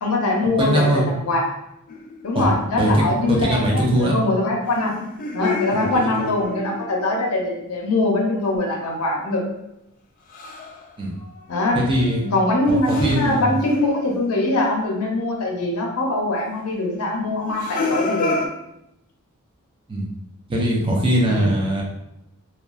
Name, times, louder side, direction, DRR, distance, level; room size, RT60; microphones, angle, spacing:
voice 1, 0.0-1.4 2.2-4.9 5.3-9.4 11.5-11.8 12.2-18.3 21.3-21.5, left 2 dB, 85° left, 0 dB, 0.6 m, -22 dB
voice 2, 0.6-1.0 2.3-2.5 2.8-3.0 3.3-4.2 5.7-6.1 11.0-11.1 11.7-12.2 12.7-13.5 19.9-20.1 20.5-21.8, right 1 dB, 25° right, -3 dB, 0.6 m, -21 dB
sound 1, 1.9-2.6 4.7-7.3 10.3-10.9 11.2-14.8 15.3-15.4 17.4-18.5, left 4 dB, 40° left, 0.3 m, -30 dB
2.9 x 2.2 x 2.4 m, 0.83 s
head